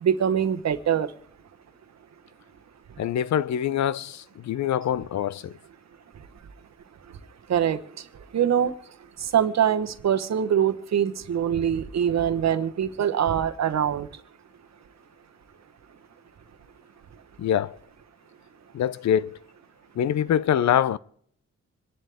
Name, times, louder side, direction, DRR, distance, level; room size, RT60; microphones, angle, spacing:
voice 1, 0.0-1.1 7.5-7.8 8.3-8.7 9.2-14.1, right 9 dB, 65° right, 1.1 m, -23 dB
voice 2, 3.0-4.2 4.5-5.5 17.4-17.8 18.7-19.4 20.0-21.0, left 10 dB, 70° left, 0.6 m, -24 dB
26.5 x 11.0 x 3.5 m
cardioid pair, 100°, 29 cm